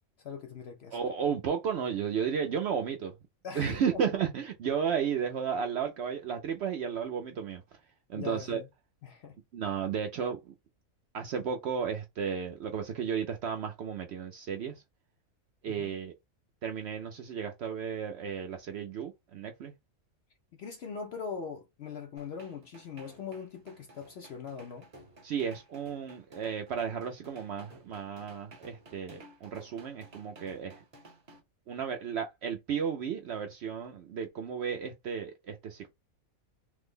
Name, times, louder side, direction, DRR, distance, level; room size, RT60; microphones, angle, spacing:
voice 1, 0.2-1.0 3.4-4.0 8.1-8.7 9.0-9.4 15.7-15.9 20.6-24.9, left 6 dB, 65° left, 0.7 m, -41 dB
voice 2, 0.9-3.1 3.5-7.6 8.1-8.6 9.5-10.5 11.1-14.8 15.6-16.1 16.6-19.7 25.2-30.8 31.7-35.9, right 7 dB, 65° right, 0.7 m, -33 dB
sound 1, 22.2-31.4, right 2 dB, 35° right, 0.8 m, -55 dB
3.2 x 2.0 x 3.5 m
omnidirectional pair, 1.5 m